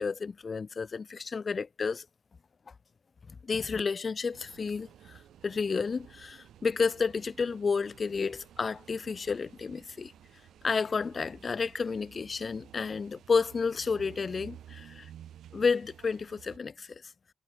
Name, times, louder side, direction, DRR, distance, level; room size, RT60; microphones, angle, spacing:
voice 1, 0.0-2.1 3.3-10.1 10.6-15.1 15.5-17.0, left 5 dB, 35° left, 0.3 m, -31 dB
sound 1, 4.3-16.6, right 11 dB, 70° right, 1.5 m, -53 dB
cardioid pair, 90°, 0 cm